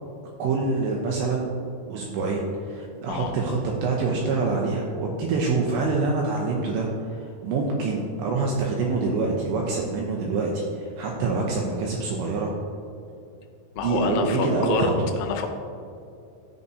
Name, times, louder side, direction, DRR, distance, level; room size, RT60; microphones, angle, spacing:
voice 1, 0.4-1.5 1.9-12.5 13.8-15.1, right 3 dB, 80° right, -1 dB, 2.5 m, -26 dB
voice 2, 13.8-15.5, left 6 dB, 90° left, 5 dB, 3.4 m, -28 dB
12.5 x 8.1 x 2.7 m, 2.5 s
omnidirectional pair, 5.9 m